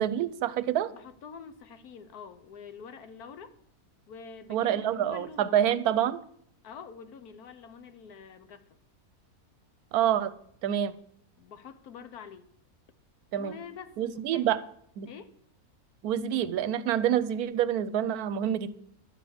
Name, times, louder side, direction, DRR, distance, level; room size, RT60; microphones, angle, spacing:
voice 1, 0.0-0.9 4.5-6.2 9.9-10.3 10.6-10.9 13.3-13.5 14.0-14.6 15.0-15.1 16.0-18.7, right 10 dB, 80° right, 15 dB, 1.1 m, -27 dB
voice 2, 0.9-3.5 4.1-5.7 6.6-8.6 11.4-12.5 13.4-14.5 15.0-15.4, left 6 dB, 85° left, 11 dB, 1.4 m, -46 dB
11.5 x 6.7 x 7.6 m, 0.68 s
omnidirectional pair, 1.6 m